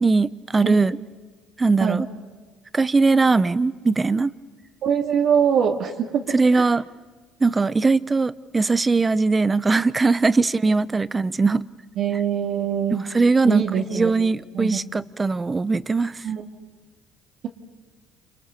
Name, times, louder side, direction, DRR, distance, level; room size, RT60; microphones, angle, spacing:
voice 1, 0.0-1.0 1.6-2.1 2.7-4.3 6.3-6.8 7.4-11.7 12.9-16.2, right 3 dB, 25° right, 0.9 m, -20 dB
voice 2, 4.8-6.3 6.5-6.7 12.0-13.0 13.5-14.1 14.5-14.8 16.2-16.4, right 8 dB, 65° right, 2.2 m, -22 dB
29.5 x 27.0 x 6.9 m
supercardioid pair, 90°, 0 cm